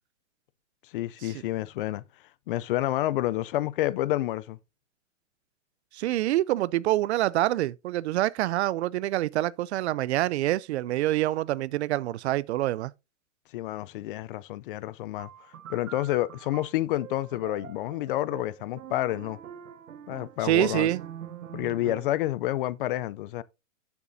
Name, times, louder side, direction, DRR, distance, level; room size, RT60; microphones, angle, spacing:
voice 1, 0.9-2.0 2.5-4.6 13.5-15.3 15.7-19.4 20.1-20.9 21.5-23.4, left 15 dB, 45° left, 0.5 m, -29 dB
voice 2, 5.9-12.9 20.4-21.0, right 15 dB, 55° right, 0.5 m, -26 dB
sound 1, 15.2-22.3, right 10 dB, 90° right, 0.9 m, -44 dB
12.0 x 7.1 x 2.7 m
hypercardioid pair, 140°, 40 cm